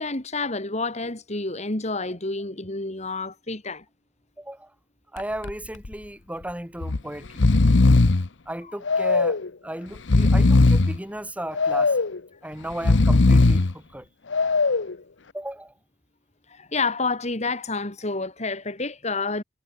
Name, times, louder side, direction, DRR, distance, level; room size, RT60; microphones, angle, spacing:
voice 1, 0.0-3.8 16.5-19.4, left 3 dB, 40° left, 2.7 m, -29 dB
voice 2, 4.4-4.7 5.1-7.4 8.5-12.0 12.4-14.1 15.3-15.7, right 1 dB, 10° right, 3.1 m, -35 dB
Breathing, 5.2-5.5 5.8-5.9 6.8-7.0 7.3-8.3 8.9-9.5 10.0-11.0 11.6-12.2 12.7-13.7 14.3-14.9, left 3 dB, 80° left, 0.9 m, -18 dB
head